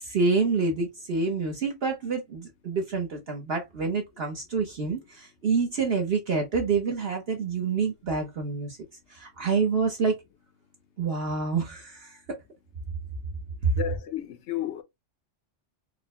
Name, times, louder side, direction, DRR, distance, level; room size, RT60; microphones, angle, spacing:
voice 1, 0.0-8.8 9.1-10.2 11.0-12.2 13.6-13.7, right 4 dB, 55° right, 1.1 m, -27 dB
voice 2, 13.8-14.8, left 11 dB, 70° left, 1.0 m, -32 dB
4.4 x 2.2 x 4.2 m
omnidirectional pair, 1.2 m